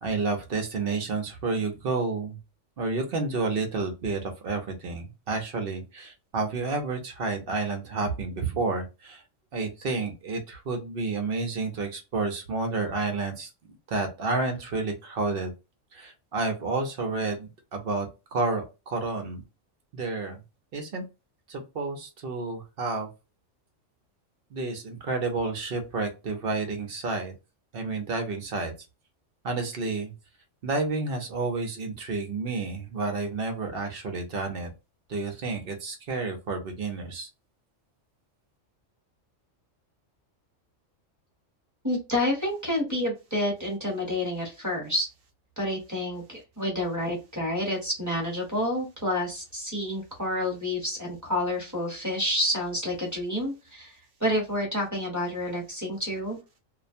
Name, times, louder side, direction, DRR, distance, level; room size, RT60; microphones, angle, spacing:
voice 1, 0.0-2.4 2.8-9.2 9.5-13.5 13.9-15.5 15.9-19.4 19.9-20.4 20.7-21.0 21.5-23.1 24.5-27.3 27.7-28.7 29.4-30.1 30.6-34.7 35.1-37.3, right 3 dB, 55° right, 4 dB, 0.7 m, -30 dB
voice 2, 41.8-45.1 45.6-56.4, left 1 dB, 15° right, -3 dB, 1.0 m, -29 dB
2.4 x 2.1 x 2.5 m, 0.27 s
omnidirectional pair, 1.3 m